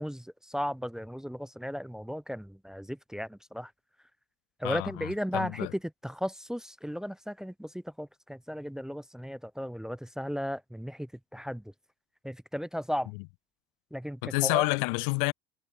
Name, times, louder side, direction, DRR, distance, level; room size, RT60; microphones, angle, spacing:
voice 1, 0.0-3.7 4.6-5.7 6.0-11.7 12.2-13.1 13.9-14.7, equal, ahead, 0.9 m, -35 dB
voice 2, 4.6-5.7 14.2-15.3, left 40 dB or more, 60° left, 0.8 m, -29 dB
figure-of-eight pair, 65°, 30 cm